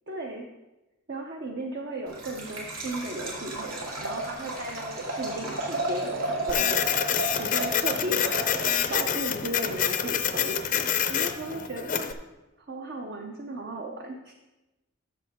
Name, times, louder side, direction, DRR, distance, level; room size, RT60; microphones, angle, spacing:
voice 1, 0.1-0.5 1.1-12.1 12.7-14.3, right 1 dB, 50° right, 2 dB, 0.6 m, -35 dB
Liquid, 2.1-8.9, right 1 dB, 85° right, 2.3 m, -33 dB
Printer, 6.5-12.1, left 8 dB, 35° left, 0.5 m, -27 dB
12.5 x 6.9 x 3.6 m, 1.0 s
head